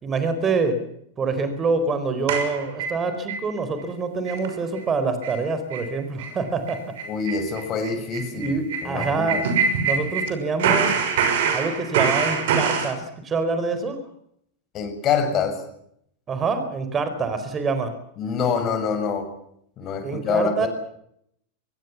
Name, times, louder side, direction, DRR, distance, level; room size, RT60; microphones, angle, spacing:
voice 1, 0.0-0.8 1.2-6.8 8.3-9.5 9.8-10.9 11.5-14.0 16.3-17.9 20.0-20.7, right 4 dB, 20° right, 9 dB, 4.5 m, -25 dB
sound 1, 2.3-3.4 3.8-3.9 4.3-4.5 4.8-4.9 5.2-5.4 5.7-5.9 6.2-6.3 6.7-10.3 10.6-12.9, right 6 dB, 55° right, 6.0 m, -24 dB
voice 2, 7.1-9.4 14.7-15.6 18.2-19.3 19.8-20.7, left 6 dB, 30° left, 7 dB, 7.1 m, -25 dB
25.0 x 21.5 x 7.3 m, 0.72 s
figure-of-eight pair, 90°, 0 cm